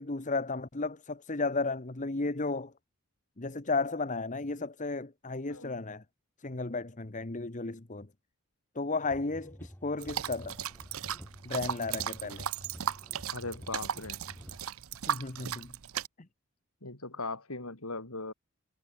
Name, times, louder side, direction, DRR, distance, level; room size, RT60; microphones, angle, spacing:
voice 1, 0.0-2.7 3.4-6.0 6.4-8.1 8.7-10.6 11.4-12.5 15.1-15.7, left 3 dB, 35° left, 1.2 m, -34 dB
sound 1, 9.0-14.6, equal, 10° left, 5.8 m, -50 dB
sound 2, 10.0-16.1, right 8 dB, 65° right, 0.7 m, -36 dB
voice 2, 13.3-14.2 16.8-18.3, left 3 dB, 75° left, 4.6 m, -39 dB
head